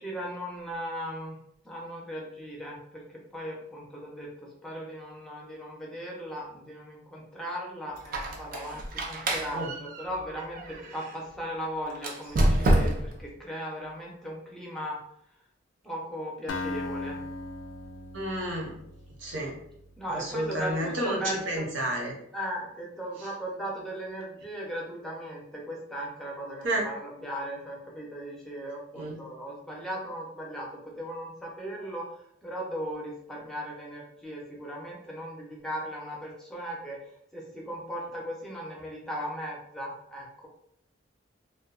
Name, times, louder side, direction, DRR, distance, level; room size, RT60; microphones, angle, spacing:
voice 1, 0.0-1.4 1.6-15.0 15.8-17.2 20.0-21.7 22.3-37.0 37.3-40.5, equal, ahead, -3 dB, 0.5 m, -37 dB
Squeak, 8.0-11.1 11.9-13.2, right 1 dB, 45° right, 0.4 m, -28 dB
Acoustic guitar, 16.5-20.3, left 2 dB, 80° left, 0.3 m, -38 dB
voice 2, 18.1-18.7 19.2-19.5 20.1-22.1 26.6-26.9 29.0-29.2, right 1 dB, 75° right, -1 dB, 0.7 m, -30 dB
2.6 x 2.1 x 2.3 m, 0.73 s
head